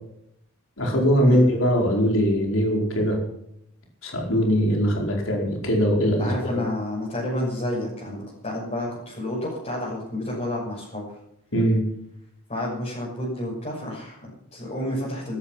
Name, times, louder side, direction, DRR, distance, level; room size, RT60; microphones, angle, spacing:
voice 1, 0.8-3.2 4.0-6.6 11.5-11.8, equal, 75° left, 0 dB, 4.7 m, -21 dB
voice 2, 6.2-11.2 12.5-15.4, left 1 dB, 35° left, -6 dB, 6.6 m, -30 dB
16.5 x 13.5 x 5.9 m, 0.78 s
head